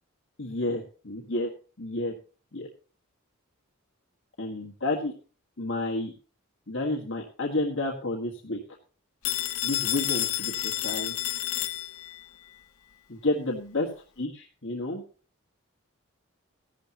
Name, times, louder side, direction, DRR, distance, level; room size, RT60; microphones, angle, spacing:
voice 1, 0.4-1.5 1.8-2.1 2.5-2.7 4.4-5.1 5.6-6.1 6.7-8.6 9.6-11.1 13.1-13.9 14.2-15.0, left 2 dB, 60° left, 0 dB, 1.6 m, -30 dB
Telephone, 9.2-12.2, left 15 dB, 80° left, 0.9 m, -30 dB
15.0 x 12.0 x 2.9 m, 0.39 s
head